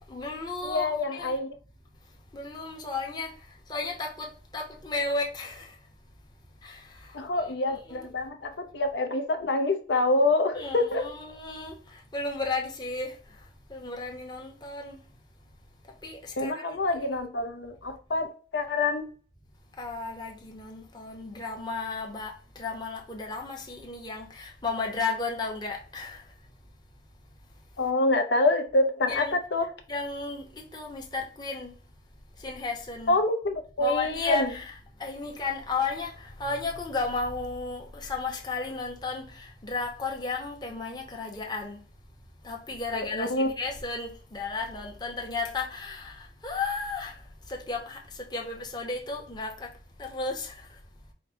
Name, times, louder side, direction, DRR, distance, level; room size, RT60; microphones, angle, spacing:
voice 1, 0.1-0.9 1.2-1.4 2.3-3.3 3.7-4.3 4.5-5.6 10.6-11.7 12.1-13.1 13.7-15.0 16.0-16.6 16.9-17.2 19.8-22.3 22.6-26.2 29.1-29.3 29.9-30.4 30.7-31.7 32.4-33.1 33.8-34.5 35.0-36.1 36.4-39.2 39.6-41.8 42.4-46.1 46.4-47.1 47.5-48.0 48.3-49.5 50.0-50.5, left 3 dB, 25° left, 0.8 m, -33 dB
voice 2, 0.6-1.6 7.1-11.1 16.4-19.1 27.8-29.7 33.1-34.5 42.9-43.5, left 2 dB, 75° left, 0.6 m, -26 dB
4.9 x 2.1 x 4.2 m
head